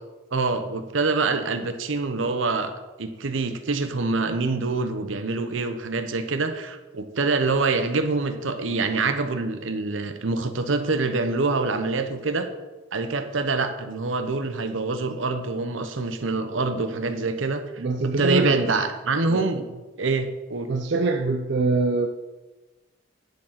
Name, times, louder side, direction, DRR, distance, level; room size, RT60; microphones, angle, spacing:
voice 1, 0.3-2.7 3.0-12.5 12.9-19.7 20.0-20.7, right 3 dB, 75° right, 8 dB, 0.9 m, -25 dB
voice 2, 17.8-18.7 19.3-19.5 20.7-22.1, right 3 dB, 55° right, 5 dB, 0.5 m, -24 dB
10.5 x 4.7 x 5.9 m, 1.2 s
head